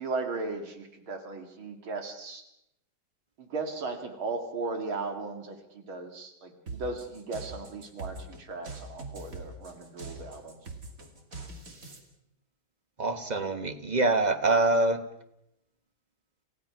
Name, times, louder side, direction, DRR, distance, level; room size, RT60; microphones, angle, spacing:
voice 1, 0.0-2.4 3.4-10.6, right 3 dB, 90° right, 5 dB, 3.1 m, -36 dB
sound 1, 6.7-12.0, right 3 dB, 40° right, 2.9 m, -42 dB
voice 2, 13.0-15.0, right 2 dB, 25° right, 8 dB, 1.2 m, -25 dB
28.5 x 15.5 x 6.0 m, 0.81 s
omnidirectional pair, 2.2 m